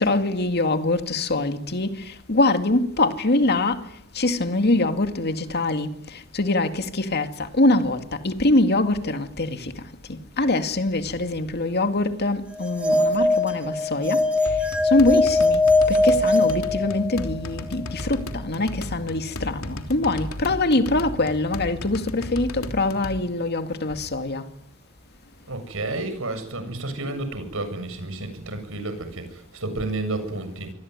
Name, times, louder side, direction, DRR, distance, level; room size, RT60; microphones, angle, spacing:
voice 1, 0.0-3.8 4.1-9.7 10.1-14.2 14.8-15.6 15.9-24.4, left 2 dB, 50° left, 2.2 m, -23 dB
sound 1, 12.6-17.4, left 2 dB, 5° right, 1.6 m, -21 dB
sound 2, 14.5-23.2, left 1 dB, 80° left, 3.3 m, -35 dB
voice 2, 25.5-30.7, right 2 dB, 70° right, 7.6 m, -31 dB
27.0 x 22.5 x 9.7 m
head